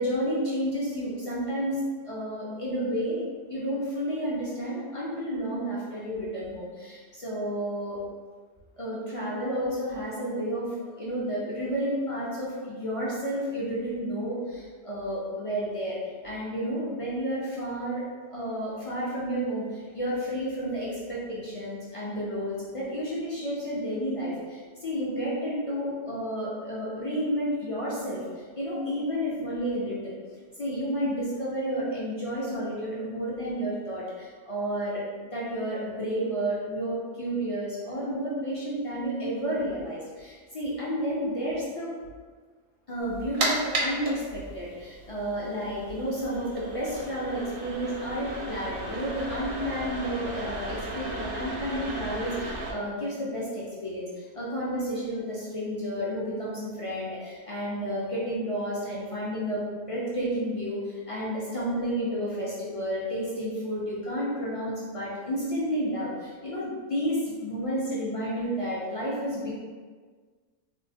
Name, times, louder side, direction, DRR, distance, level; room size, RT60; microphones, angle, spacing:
voice 1, 0.0-1.8 2.0-3.2 3.5-8.0 8.8-16.0 16.2-18.0 18.3-28.2 28.6-30.2 30.6-35.0 35.3-41.9 42.9-69.5, equal, 50° left, -7 dB, 0.4 m, -31 dB
sound 1, 43.0-52.7, right 2 dB, 60° right, 0.6 m, -35 dB
3.6 x 2.1 x 2.6 m, 1.5 s
omnidirectional pair, 1.3 m